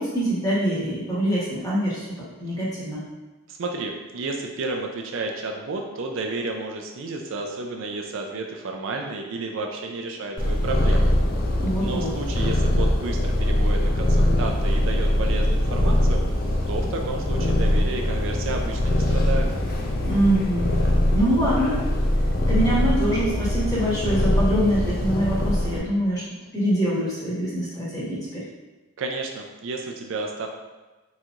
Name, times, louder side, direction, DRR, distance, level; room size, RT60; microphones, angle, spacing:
voice 1, 0.0-3.1 11.5-12.1 20.0-20.7 21.1-21.8 22.5-26.3 26.5-28.4, right 1 dB, 15° left, -9 dB, 1.5 m, -24 dB
voice 2, 3.5-11.1 11.8-16.2 16.7-19.5 29.0-30.5, right 3 dB, 60° right, 2 dB, 0.4 m, -31 dB
Purr, 10.4-25.8, left 1 dB, 40° left, 0.5 m, -22 dB
4.5 x 3.9 x 2.5 m, 1.2 s
head